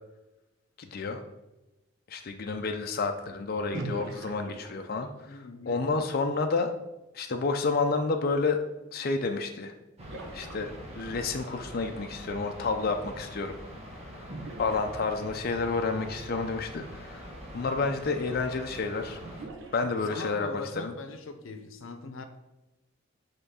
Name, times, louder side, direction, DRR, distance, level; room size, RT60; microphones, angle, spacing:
voice 1, 0.8-1.2 2.1-6.7 7.1-8.6 8.9-9.7 10.3-10.7 11.0-13.6 14.6-17.3 17.5-19.2 19.7-20.9, left 4 dB, 50° left, 0.5 m, -30 dB
sound 1, 3.7-5.2 9.2-9.3 10.0-11.2 14.3-15.6 16.9-17.0 17.5-17.6 19.2-20.5, right 2 dB, 70° right, 0.9 m, -42 dB
voice 2, 5.2-6.0 20.1-22.3, left 3 dB, 85° left, 0.7 m, -42 dB
sound 2, 10.0-19.5, equal, 35° right, 1.2 m, -44 dB
5.7 x 3.7 x 5.5 m
head